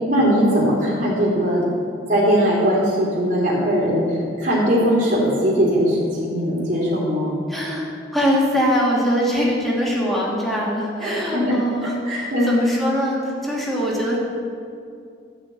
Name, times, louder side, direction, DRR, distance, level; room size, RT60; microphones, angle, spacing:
voice 1, 0.1-1.6 2.1-7.4 11.0-11.6 12.0-12.6, equal, 50° right, -5 dB, 2.7 m, -20 dB
voice 2, 7.5-14.2, equal, ahead, -5 dB, 2.3 m, -22 dB
12.5 x 5.8 x 8.2 m, 2.4 s
head